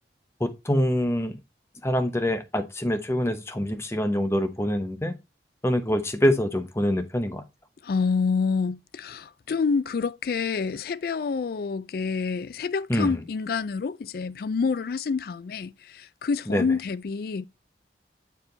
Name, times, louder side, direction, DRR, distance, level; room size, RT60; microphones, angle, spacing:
voice 1, 0.4-1.4 1.8-5.1 5.6-7.4 12.9-13.1 16.5-16.6, equal, 15° left, 0.8 m, -25 dB
voice 2, 7.8-17.5, left 5 dB, 55° left, 0.4 m, -27 dB
7.2 x 4.6 x 3.9 m
head